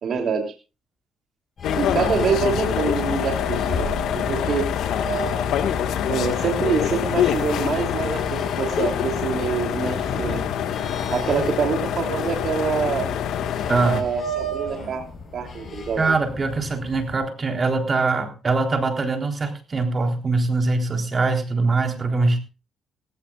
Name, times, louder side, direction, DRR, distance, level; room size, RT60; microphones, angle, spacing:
voice 1, 0.0-0.4 1.8-4.7 6.1-10.4 11.1-13.1 13.8-15.0 15.3-16.1, right 6 dB, 60° right, 3 dB, 3.0 m, -25 dB
sound 1, 1.6-14.0, left 9 dB, 80° left, 1.7 m, -25 dB
sound 2, 1.6-17.2, equal, 45° left, 7.4 m, -36 dB
voice 2, 13.7-14.1 16.0-22.4, right 3 dB, 35° right, 4 dB, 3.7 m, -22 dB
18.0 x 16.5 x 2.4 m, 0.31 s
cardioid pair, 90°, 0 cm